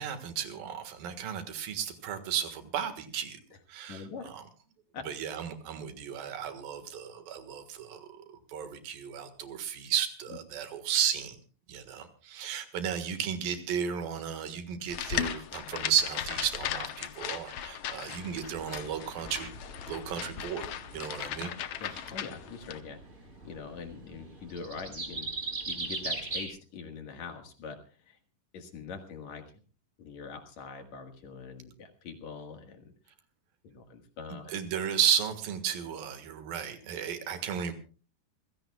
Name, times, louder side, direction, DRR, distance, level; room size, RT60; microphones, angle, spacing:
voice 1, 0.0-3.4 3.7-4.4 5.1-11.4 11.7-19.5 19.9-20.7 20.9-22.0 34.5-37.7, right 8 dB, 85° right, 8 dB, 3.4 m, -34 dB
voice 2, 3.9-4.3 4.9-5.0 10.3-10.4 21.8-23.0 23.4-25.3 25.7-27.8 28.1-28.2 28.5-29.4 30.0-32.9 33.6-34.6, left 5 dB, 60° left, 5 dB, 2.6 m, -43 dB
sound 1, 14.9-22.8, left 10 dB, 85° left, 1.3 m, -37 dB
sound 2, 18.2-26.5, right 3 dB, 20° right, 2.6 m, -41 dB
27.0 x 16.0 x 2.3 m, 0.38 s
omnidirectional pair, 4.0 m